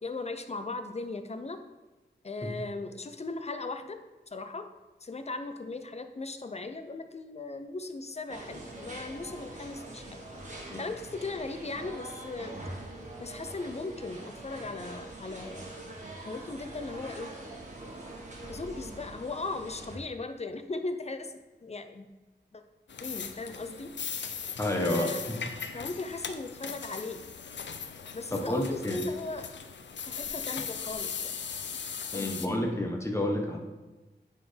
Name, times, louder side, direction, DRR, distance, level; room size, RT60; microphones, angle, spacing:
voice 1, 0.0-1.6 2.2-4.0 4.3-4.7 5.0-10.2 10.8-12.6 13.2-15.6 16.2-17.3 18.5-22.1 22.5-22.6 23.0-23.9 24.7-25.2 25.7-27.2 28.1-29.5 30.0-31.3 32.1-32.3, left 3 dB, 35° left, 8 dB, 0.6 m, -38 dB
sound 1, 8.3-20.0, right 2 dB, 40° right, 1.5 m, -43 dB
sound 2, 22.9-32.5, left 6 dB, 80° left, 0.5 m, -39 dB
voice 2, 24.6-25.1 28.3-29.0 32.1-33.6, left 1 dB, 15° left, 1 dB, 1.1 m, -29 dB
9.0 x 4.3 x 3.4 m, 1.1 s
wide cardioid pair, 75°, 18 cm